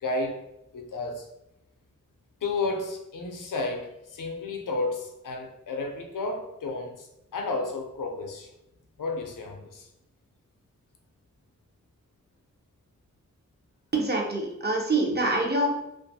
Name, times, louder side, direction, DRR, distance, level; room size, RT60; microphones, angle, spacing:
voice 1, 0.0-0.4 0.7-1.3 2.4-8.5 9.0-9.9, left 3 dB, 80° left, 0.5 m, -32 dB
voice 2, 13.9-15.8, right 2 dB, 35° right, 0.6 m, -25 dB
2.5 x 2.3 x 2.6 m
wide cardioid pair, 80°, 32 cm